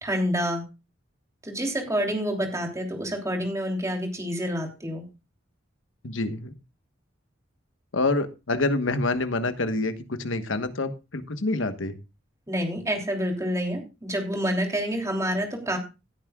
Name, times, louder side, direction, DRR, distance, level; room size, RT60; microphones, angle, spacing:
voice 1, 0.0-0.6 1.4-5.0 12.5-15.8, equal, 15° right, 2 dB, 3.1 m, -28 dB
voice 2, 6.0-6.5 7.9-12.0, left 2 dB, 75° left, 9 dB, 1.3 m, -27 dB
18.0 x 9.6 x 2.4 m, 0.28 s
head